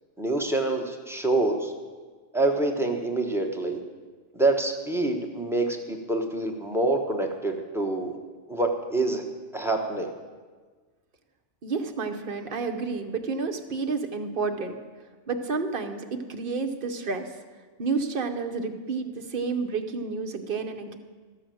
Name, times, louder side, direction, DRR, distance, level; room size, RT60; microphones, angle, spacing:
voice 1, 0.2-1.7 2.3-3.8 4.3-8.2 8.5-9.2 9.5-10.1, right 2 dB, ahead, 3 dB, 0.9 m, -26 dB
voice 2, 11.6-14.8 15.3-17.3 17.8-21.0, right 4 dB, 50° right, 6 dB, 0.9 m, -30 dB
13.5 x 6.2 x 7.7 m, 1.4 s
omnidirectional pair, 1.3 m